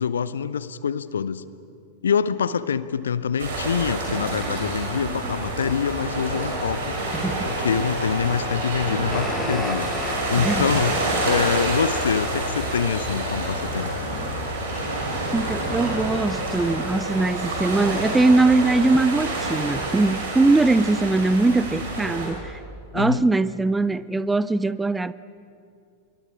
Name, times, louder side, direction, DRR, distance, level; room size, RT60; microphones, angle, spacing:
voice 1, 0.0-1.4 2.0-7.0 7.4-13.9 22.9-23.3, left 7 dB, 70° left, 0.7 m, -25 dB
sound 1, 3.4-22.3, right 2 dB, 60° right, 5.9 m, -28 dB
sound 2, 5.2-19.1, left 2 dB, 85° left, 3.7 m, -35 dB
voice 2, 7.2-7.5 10.4-10.7 15.3-22.6 22.9-25.1, right 2 dB, 10° right, 0.5 m, -21 dB
sound 3, 9.1-13.8, left 4 dB, 10° left, 1.0 m, -37 dB
26.0 x 23.0 x 5.0 m
figure-of-eight pair, 90°, 0 cm